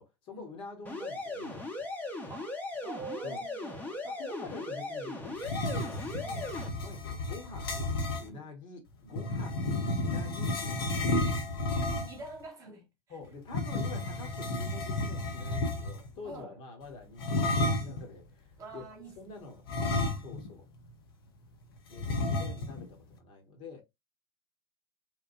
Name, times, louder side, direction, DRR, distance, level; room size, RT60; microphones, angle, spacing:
voice 1, 0.0-1.9 3.2-3.4 4.0-6.0 6.8-7.9 8.2-11.2 13.1-18.9 19.1-19.6 20.0-20.7 21.9-23.8, left 3 dB, 40° left, 1.0 m, -47 dB
sound 1, 0.9-6.7, left 2 dB, 10° left, 0.8 m, -38 dB
voice 2, 2.3-4.0 6.2-6.5 8.2-8.4 9.1-9.3 10.1-10.2 11.7-12.9 16.2-16.5 18.6-19.2 19.7-19.9, right 3 dB, 25° right, 1.1 m, -46 dB
sound 2, 5.4-8.3 9.1-12.3 13.5-16.1 17.2-18.0 19.7-20.6 20.9-21.0 22.0-22.8, left 2 dB, 65° left, 0.6 m, -32 dB
3.0 x 2.1 x 2.4 m
figure-of-eight pair, 80°, 13 cm